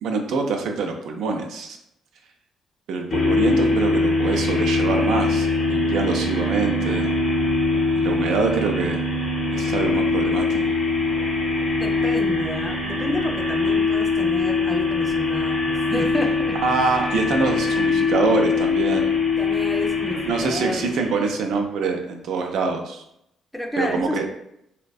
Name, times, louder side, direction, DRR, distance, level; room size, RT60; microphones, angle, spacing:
voice 1, 0.0-1.8 2.9-7.1 8.0-9.0 9.5-10.7 16.6-19.1 20.3-23.0 23.8-24.3, right 4 dB, 80° right, 3 dB, 0.4 m, -25 dB
sound 1, 3.1-21.4, left 3 dB, 55° left, 0.6 m, -22 dB
voice 2, 11.8-16.6 19.4-20.9 23.5-24.2, left 1 dB, 5° left, 3 dB, 0.3 m, -30 dB
2.5 x 2.1 x 2.3 m, 0.77 s
cardioid pair, 90°, 0 cm